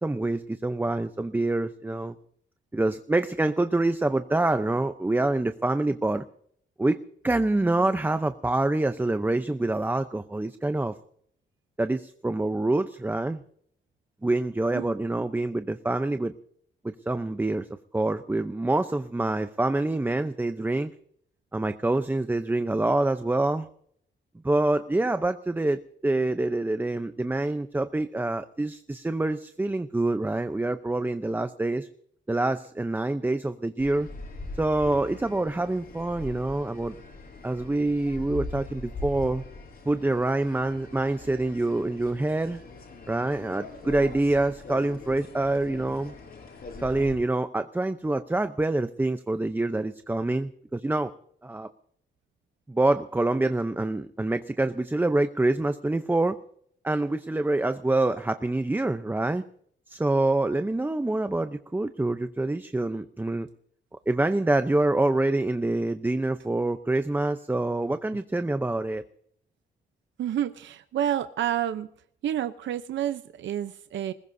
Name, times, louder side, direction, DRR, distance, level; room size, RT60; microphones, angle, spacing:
voice 1, 0.0-2.1 2.7-6.2 6.8-7.0 7.2-10.9 11.8-13.4 14.2-16.3 16.8-17.7 17.9-20.9 21.5-23.7 24.4-31.9 32.3-34.1 34.6-37.0 37.4-39.4 39.9-42.6 43.1-46.1 46.8-51.1 51.4-51.7 52.7-56.4 56.8-59.4 59.9-63.5 64.1-69.0, right 2 dB, 10° right, 9 dB, 0.7 m, -26 dB
sound 1, 33.8-47.2, left 3 dB, 50° left, 6.6 m, -42 dB
voice 2, 70.2-71.9 72.2-74.1, right 11 dB, 80° right, 10 dB, 0.8 m, -29 dB
21.5 x 21.0 x 2.7 m, 0.63 s
wide cardioid pair, 130°, 19 cm